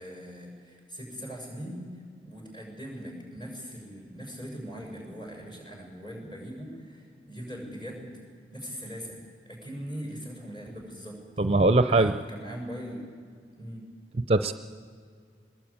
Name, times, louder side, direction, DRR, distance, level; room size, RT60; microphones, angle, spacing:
voice 1, 0.0-1.9 2.2-8.1 8.5-11.2 11.9-13.1 13.5-13.9, equal, 30° left, 0 dB, 6.8 m, -41 dB
voice 2, 11.4-12.1 14.3-14.5, right 2 dB, 35° right, 10 dB, 0.5 m, -21 dB
21.5 x 21.0 x 8.8 m, 2.1 s
head